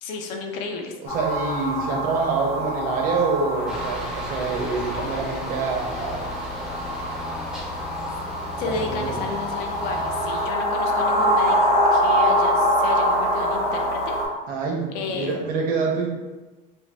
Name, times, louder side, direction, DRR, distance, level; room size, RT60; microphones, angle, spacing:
voice 1, 0.0-0.9 8.6-14.2 14.9-15.4, left 4 dB, 80° left, 3 dB, 0.5 m, -32 dB
voice 2, 1.0-6.4 8.7-9.2 14.5-16.1, right 4 dB, 55° right, 0 dB, 0.6 m, -26 dB
sound 1, 1.1-14.3, equal, 65° left, 0.9 m, -24 dB
Aircraft, 3.7-10.5, left 2 dB, 5° right, 0.3 m, -36 dB
2.6 x 2.0 x 3.2 m, 1.2 s
cardioid pair, 170°, 17 cm